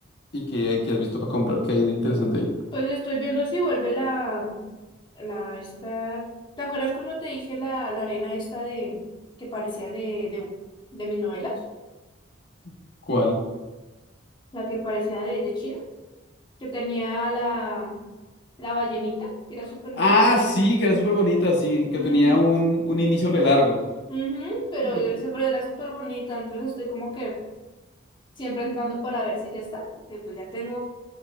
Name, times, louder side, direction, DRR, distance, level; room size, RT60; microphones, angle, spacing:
voice 1, 0.3-2.5 13.1-13.4 20.0-23.7, left 1 dB, 55° left, -2 dB, 1.3 m, -21 dB
voice 2, 2.7-4.6 5.1-6.2 6.6-9.0 9.4-10.5 10.9-11.6 14.5-15.8 16.6-18.0 18.6-20.2 21.9-22.4 24.1-27.4 28.4-30.8, right 1 dB, 25° left, -4 dB, 1.3 m, -29 dB
8.3 x 5.8 x 2.6 m, 1.2 s
head